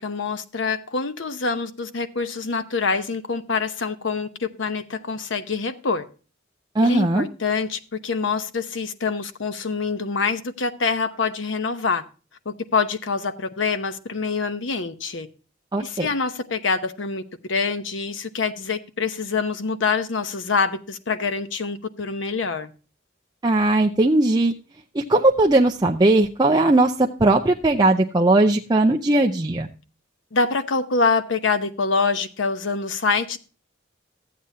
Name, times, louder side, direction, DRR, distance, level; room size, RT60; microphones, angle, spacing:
voice 1, 0.0-6.0 6.8-12.0 12.4-15.3 15.8-17.2 17.5-22.7 30.3-33.4, left 4 dB, 80° left, 0.9 m, -25 dB
voice 2, 6.7-7.2 15.7-16.1 23.4-24.5 24.9-29.7, right 2 dB, 20° right, 0.5 m, -18 dB
14.0 x 8.5 x 2.7 m
head